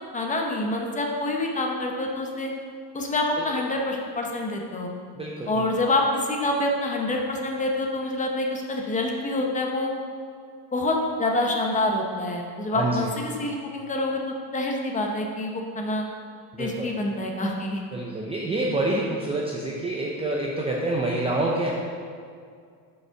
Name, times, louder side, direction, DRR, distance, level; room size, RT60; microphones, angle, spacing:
voice 1, 0.1-2.5 2.9-4.9 5.5-9.9 10.7-16.0 16.6-17.8, left 2 dB, 20° left, 1 dB, 0.7 m, -26 dB
voice 2, 5.2-5.6 12.7-13.1 16.5-16.9 17.9-21.7, right 2 dB, 15° right, -3 dB, 0.4 m, -27 dB
7.8 x 5.5 x 5.6 m, 2.2 s
cardioid pair, 175°, 42 cm